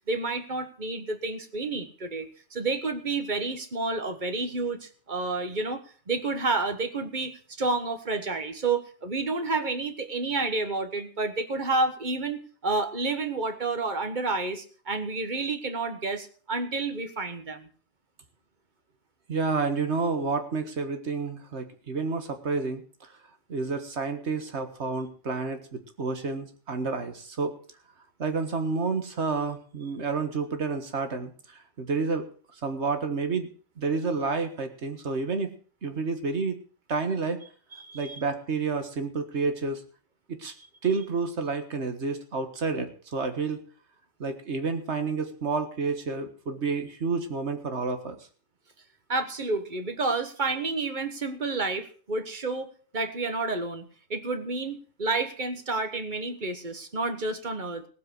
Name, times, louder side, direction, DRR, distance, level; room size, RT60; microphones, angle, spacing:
voice 1, 0.1-17.7 37.7-38.2 49.1-57.9, right 3 dB, 45° right, 9 dB, 1.5 m, -30 dB
voice 2, 19.3-23.1 23.5-27.5 28.2-32.3 32.6-33.5 33.8-35.5 35.8-36.6 36.9-37.4 37.9-39.8 40.3-40.5 40.8-43.6 44.2-48.2, right 4 dB, 75° right, 7 dB, 1.8 m, -30 dB
17.5 x 7.7 x 6.2 m, 0.42 s
omnidirectional pair, 1.2 m